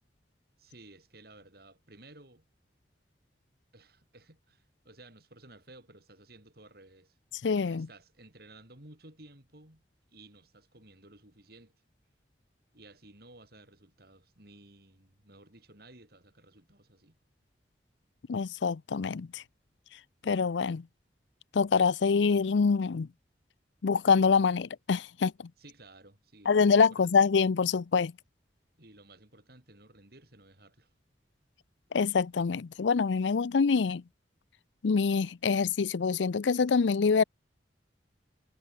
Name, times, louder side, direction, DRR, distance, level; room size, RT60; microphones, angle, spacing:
voice 1, 0.6-2.4 3.7-7.2 7.7-9.8 10.1-11.7 12.7-17.2 25.6-27.3 28.8-30.9, right 2 dB, 60° right, 6.5 m, -55 dB
voice 2, 7.4-7.9 18.3-19.4 20.2-20.8 21.5-23.1 23.8-25.3 26.5-28.1 31.9-34.0 34.8-37.2, left 5 dB, 90° left, 0.5 m, -25 dB
head